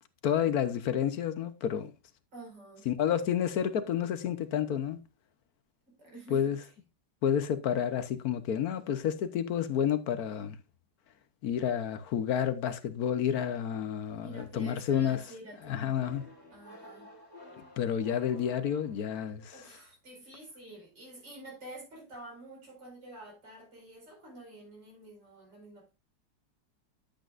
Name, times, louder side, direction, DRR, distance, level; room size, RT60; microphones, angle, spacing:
voice 1, 0.2-1.9 2.9-5.0 6.3-6.6 7.2-10.6 11.4-15.2 15.7-16.2 17.8-19.7, left 9 dB, 65° left, 1.2 m, -30 dB
voice 2, 2.3-2.9 5.9-6.5 14.2-16.1 16.5-17.1 19.5-25.9, right 1 dB, 85° right, 5.7 m, -49 dB
sound 1, 15.9-19.5, left 2 dB, 10° right, 2.5 m, -52 dB
10.5 x 8.4 x 2.5 m
omnidirectional pair, 1.8 m